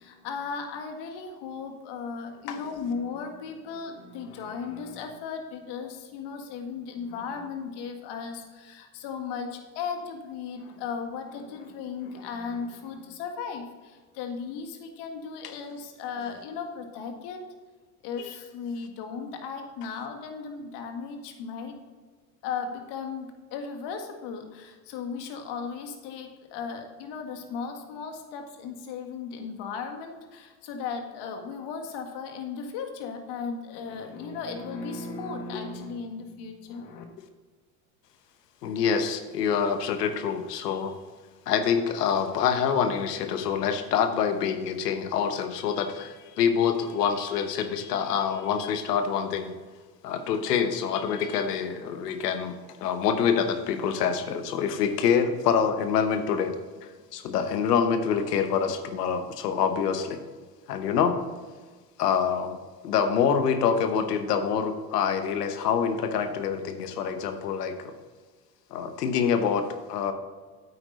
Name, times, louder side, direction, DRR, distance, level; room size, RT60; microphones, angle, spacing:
voice 1, 0.0-17.4 18.0-21.8 22.4-37.0, left 5 dB, 60° left, 5 dB, 1.8 m, -36 dB
voice 2, 38.6-40.9 41.5-49.5 50.0-56.6 57.1-60.2 60.7-61.2 62.0-62.6 62.8-67.9 68.7-70.1, left 7 dB, 85° left, 8 dB, 1.1 m, -26 dB
8.8 x 8.4 x 4.0 m, 1.4 s
hypercardioid pair, 80°, 46 cm